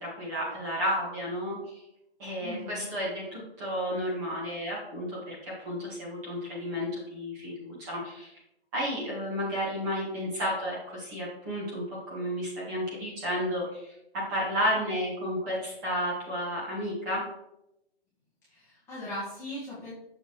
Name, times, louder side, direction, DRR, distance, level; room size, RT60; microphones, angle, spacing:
voice 1, 0.0-1.8 2.2-8.3 8.7-13.9 14.3-17.2, equal, 15° right, -5 dB, 1.7 m, -32 dB
voice 2, 2.4-2.9 18.5-19.9, equal, 10° left, -12 dB, 1.5 m, -39 dB
6.7 x 5.4 x 3.1 m, 0.84 s
hypercardioid pair, 170°, 31 cm